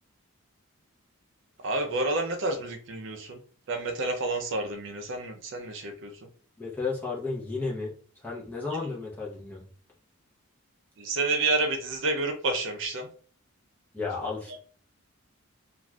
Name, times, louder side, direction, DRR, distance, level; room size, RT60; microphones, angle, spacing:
voice 1, 1.6-3.4 3.7-6.1 11.0-13.1 14.2-14.6, right 2 dB, 55° right, 4 dB, 0.4 m, -29 dB
voice 2, 6.6-7.9 8.2-9.6 13.9-14.6, left 4 dB, 10° left, -5 dB, 0.7 m, -33 dB
2.4 x 2.4 x 3.1 m, 0.42 s
head